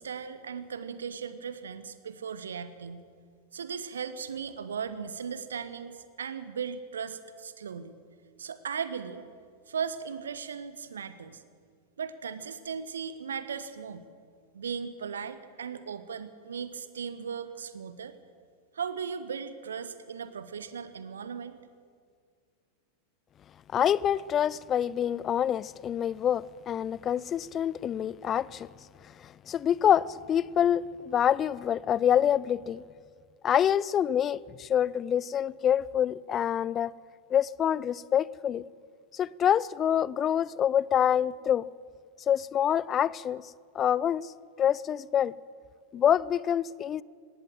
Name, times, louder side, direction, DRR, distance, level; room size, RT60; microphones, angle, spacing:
voice 1, 0.0-3.0 3.5-7.9 8.4-9.2 9.7-11.4 12.0-14.0 14.5-18.1 18.7-21.6, right 6 dB, 70° right, 1.0 m, -37 dB
voice 2, 23.7-28.7 29.5-32.8 33.4-36.9 37.3-38.6 39.1-41.7 42.3-43.4 43.8-44.3 44.6-45.3 45.9-47.0, left 9 dB, 25° left, 0.4 m, -26 dB
19.5 x 18.0 x 7.6 m
figure-of-eight pair, 90°, 0 cm